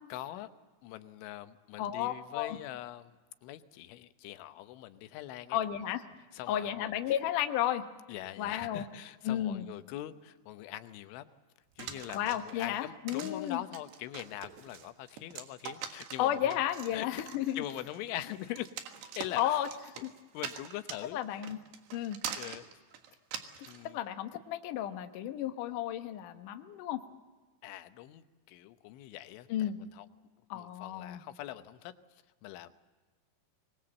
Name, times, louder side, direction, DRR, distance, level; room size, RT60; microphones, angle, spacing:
voice 1, 0.1-0.5 0.8-5.6 6.3-6.9 8.1-11.3 11.8-16.6 16.9-17.3 17.6-18.7 19.2-19.7 20.3-21.5 22.3-22.6 23.7-24.0 27.6-30.1 30.5-31.9 32.4-32.7, left 14 dB, 90° left, 10 dB, 3.4 m, -43 dB
voice 2, 1.8-2.6 5.5-6.0 6.5-7.8 8.4-8.8 9.2-9.6 12.1-13.6 16.2-17.6 19.4-19.7 20.0-20.1 21.1-21.6 21.9-22.2 23.9-27.0 29.5-29.8 30.5-31.2, left 11 dB, 70° left, 7 dB, 2.0 m, -33 dB
sound 1, 11.8-23.8, right 8 dB, 70° right, 3.5 m, -44 dB
24.5 x 20.5 x 7.7 m, 1.3 s
omnidirectional pair, 5.4 m